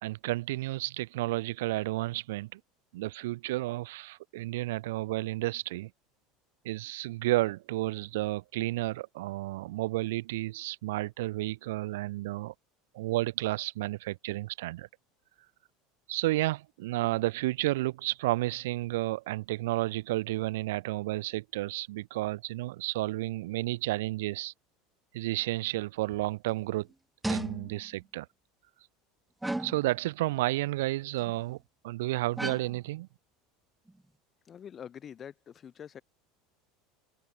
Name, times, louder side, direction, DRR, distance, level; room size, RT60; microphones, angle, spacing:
voice 1, 0.0-2.6 2.9-5.9 6.6-12.5 12.9-14.9 16.1-24.5 25.1-26.9 27.2-28.3 29.6-31.6 31.8-33.1, right 18 dB, 90° right, 3.1 m, -31 dB
sound 1, 26.6-26.7 27.2-27.9 29.4-29.9 31.2-31.5 32.4-32.8 33.9-34.0, right 1 dB, 5° right, 1.1 m, -35 dB
voice 2, 34.5-36.0, left 8 dB, 25° left, 5.8 m, -45 dB
open air
supercardioid pair, 165°, 0 cm